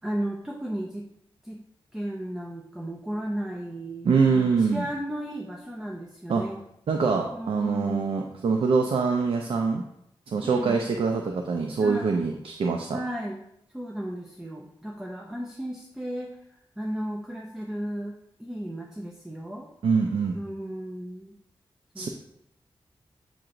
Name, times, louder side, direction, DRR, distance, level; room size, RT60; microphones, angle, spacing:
voice 1, 0.0-1.1 1.4-1.6 1.9-6.6 7.3-8.4 10.4-10.9 11.8-12.2 12.9-13.4 13.7-16.4 16.8-19.7 20.3-21.4 21.9-22.1, equal, 5° right, 0 dB, 0.5 m, -34 dB
voice 2, 4.0-4.9 6.3-6.5 6.9-9.8 10.3-13.0 19.8-20.4 22.0-22.1, right 5 dB, 80° right, 3 dB, 0.4 m, -24 dB
7.3 x 2.9 x 2.5 m, 0.78 s
wide cardioid pair, 85°, 9 cm